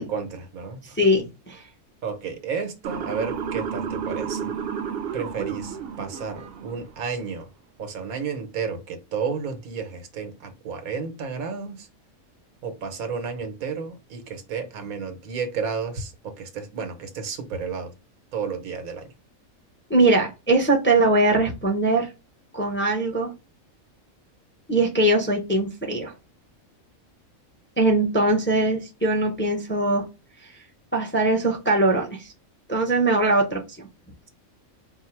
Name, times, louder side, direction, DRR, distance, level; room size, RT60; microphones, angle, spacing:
voice 1, 0.1-1.0 2.0-4.5 5.1-7.5 7.8-11.9 12.6-17.9 18.3-19.1, right 5 dB, 85° right, 1.3 m, -32 dB
voice 2, 1.0-1.6 19.9-22.1 22.5-23.3 24.7-26.1 27.8-30.1 30.9-32.3 32.7-33.9, right 2 dB, 15° left, 0.5 m, -21 dB
Motor vehicle (road) / Siren, 2.8-7.0, right 7 dB, 60° right, 0.7 m, -32 dB
4.4 x 2.0 x 4.4 m
omnidirectional pair, 1.4 m